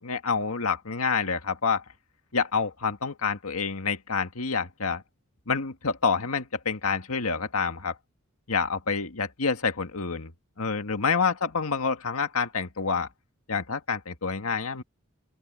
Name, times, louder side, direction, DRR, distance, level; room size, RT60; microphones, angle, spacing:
voice 1, 0.0-1.8 2.3-5.0 5.5-8.0 8.5-10.3 10.6-13.1 13.5-14.8, left 5 dB, 90° left, 1.8 m, -28 dB
open air
head